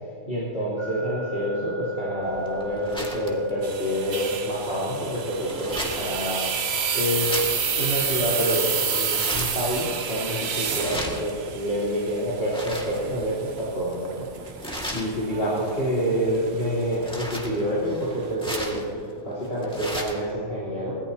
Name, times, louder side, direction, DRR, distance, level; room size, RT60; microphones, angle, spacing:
voice 1, 0.0-6.6 6.9-7.4 7.8-14.3 14.6-21.0, equal, 50° left, -10 dB, 4.1 m, -27 dB
sound 1, 0.8-13.7, left 2 dB, 65° left, 1.6 m, -40 dB
sound 2, 2.2-20.3, equal, 5° left, 2.1 m, -38 dB
sound 3, 3.6-18.3, right 6 dB, 60° right, 1.1 m, -30 dB
25.0 x 18.0 x 2.9 m, 2.5 s
omnidirectional pair, 1.3 m